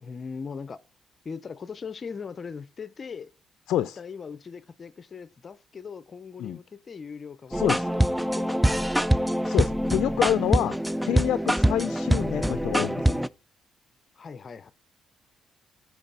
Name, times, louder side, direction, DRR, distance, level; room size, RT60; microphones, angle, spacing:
voice 1, 0.0-0.8 1.2-3.3 4.0-7.7 7.9-9.5 14.1-14.7, left 5 dB, 40° left, 0.6 m, -40 dB
voice 2, 3.7-4.0 6.4-6.6 7.5-7.9 9.5-10.8 11.0-13.2, left 12 dB, 80° left, 0.4 m, -27 dB
sound 1, 7.5-13.3, equal, 5° right, 0.3 m, -24 dB
9.9 x 4.7 x 3.8 m
cardioid pair, 90°, 0 cm